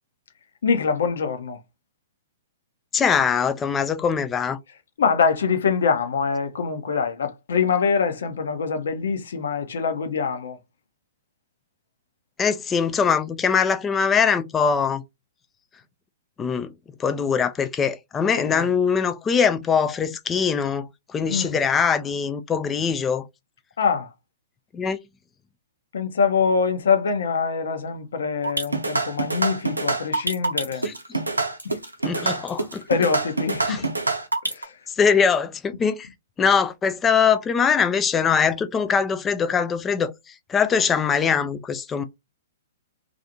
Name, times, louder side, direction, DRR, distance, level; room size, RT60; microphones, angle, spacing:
voice 1, 0.6-1.6 5.0-10.6 18.5-18.7 21.3-21.6 23.8-24.1 25.9-30.9 31.6-31.8 32.9-33.9 34.4-34.7, left 5 dB, 65° left, 0.7 m, -24 dB
voice 2, 2.9-4.6 12.4-15.0 16.4-16.7 17.0-23.2 24.7-25.0 30.8-30.9 32.0-32.8 33.7-33.8 35.0-36.1 36.4-40.1 40.5-42.0, left 6 dB, 15° left, 0.4 m, -22 dB
sound 1, 28.4-34.6, right 3 dB, 90° right, 0.6 m, -25 dB
2.5 x 2.4 x 2.7 m
figure-of-eight pair, 115°, 0 cm